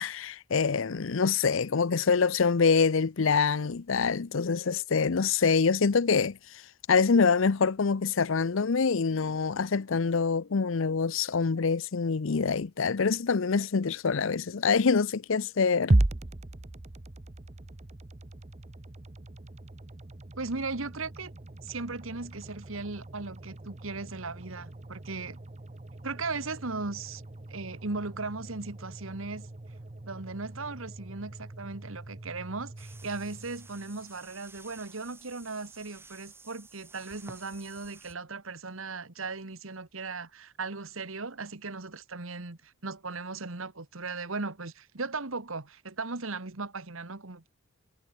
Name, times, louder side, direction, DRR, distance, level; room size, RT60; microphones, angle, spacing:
voice 1, 0.0-6.6 6.9-16.0, left 5 dB, 70° left, 0.6 m, -25 dB
sound 1, 15.9-34.1, right 1 dB, 30° right, 0.8 m, -36 dB
voice 2, 20.4-21.3 21.6-25.4 26.0-27.2 27.5-29.5 30.0-47.5, right 3 dB, 75° right, 1.7 m, -37 dB
sound 2, 32.8-38.2, right 3 dB, 10° right, 2.8 m, -52 dB
head